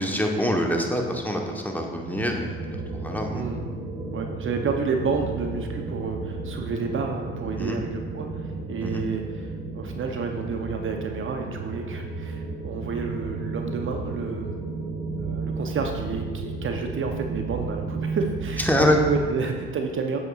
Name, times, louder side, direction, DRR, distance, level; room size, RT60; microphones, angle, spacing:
voice 1, 0.0-3.4 7.6-7.8 8.8-9.0 18.6-19.0, left 1 dB, 5° left, 1 dB, 1.0 m, -25 dB
sound 1, 2.0-19.3, right 3 dB, 80° right, 1.0 m, -33 dB
voice 2, 3.3-3.7 4.1-14.5 15.2-18.7 19.0-20.2, right 4 dB, 40° right, 3 dB, 0.7 m, -30 dB
7.7 x 7.5 x 2.4 m, 1.5 s
hypercardioid pair, 50°, 32 cm